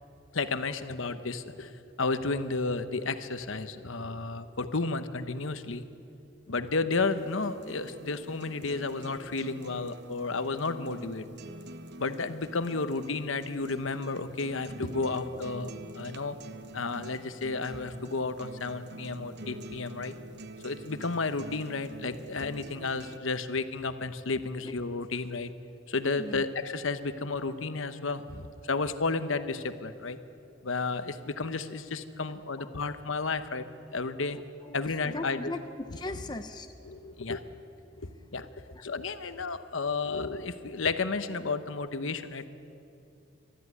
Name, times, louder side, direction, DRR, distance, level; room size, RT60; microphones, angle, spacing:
voice 1, 0.3-1.7 2.0-5.8 6.5-11.3 12.0-16.4 16.7-20.1 20.6-25.5 25.9-30.2 30.6-33.7 33.9-34.4 34.7-35.5 36.8-37.4 38.3-38.5 38.8-42.5, left 3 dB, 75° left, 10 dB, 1.0 m, -32 dB
sound 1, 7.2-23.2, right 2 dB, 55° right, 1.0 m, -46 dB
voice 2, 34.6-36.7 38.7-38.8, left 2 dB, 20° left, 6 dB, 0.7 m, -38 dB
22.5 x 13.5 x 9.8 m, 2.7 s
head